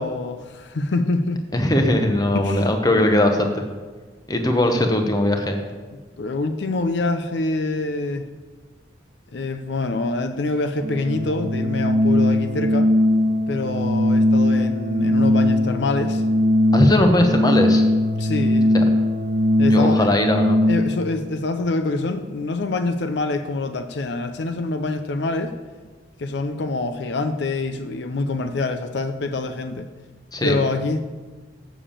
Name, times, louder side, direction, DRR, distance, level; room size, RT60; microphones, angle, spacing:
voice 1, 0.0-1.4 2.3-2.7 6.2-8.3 9.3-12.9 13.5-16.2 18.2-18.9 19.6-20.1 20.7-25.5 26.2-29.9 30.4-31.0, left 2 dB, 65° left, 8 dB, 0.5 m, -25 dB
voice 2, 1.5-3.6 4.3-5.6 16.7-17.8 18.7-18.8 19.6-20.6 30.3-30.6, left 1 dB, 20° left, 5 dB, 0.9 m, -19 dB
Organ, 10.8-21.1, left 1 dB, 50° right, 0.8 m, -19 dB
7.0 x 6.8 x 7.3 m, 1.4 s
head